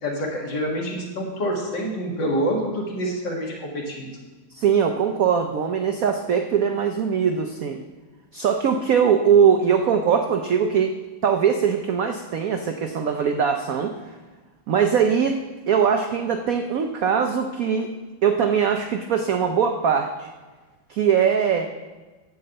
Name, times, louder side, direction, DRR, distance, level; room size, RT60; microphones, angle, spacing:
voice 1, 0.0-4.1, equal, 60° left, -1 dB, 2.4 m, -27 dB
voice 2, 4.5-7.8 8.3-13.9 14.7-15.4 15.7-17.9 18.2-20.3 20.9-21.7, right 7 dB, 75° right, 5 dB, 0.7 m, -21 dB
11.0 x 4.8 x 7.7 m, 1.3 s
omnidirectional pair, 2.2 m